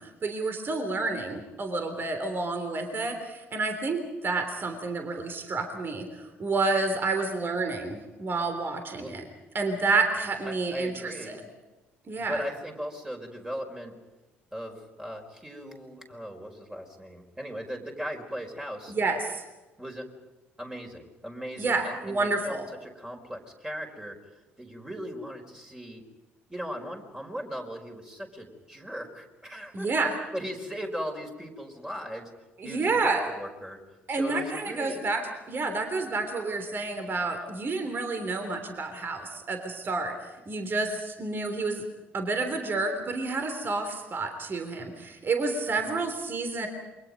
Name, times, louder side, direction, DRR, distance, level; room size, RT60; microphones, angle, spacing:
voice 1, 0.0-9.2 9.5-11.4 12.1-12.4 18.9-19.4 21.6-22.6 29.7-30.1 32.6-33.3 34.1-40.1 40.5-41.8 42.1-46.7, right 3 dB, 35° right, 6 dB, 3.4 m, -29 dB
voice 2, 10.4-11.4 12.1-13.9 14.5-18.9 19.8-20.1 20.6-22.6 22.9-24.2 24.6-26.0 26.5-29.9 30.3-32.3 32.6-33.8 34.1-35.0 45.8-46.0, equal, 10° right, 2 dB, 4.9 m, -38 dB
28.0 x 24.0 x 5.3 m, 1.1 s
figure-of-eight pair, 50°, 6 cm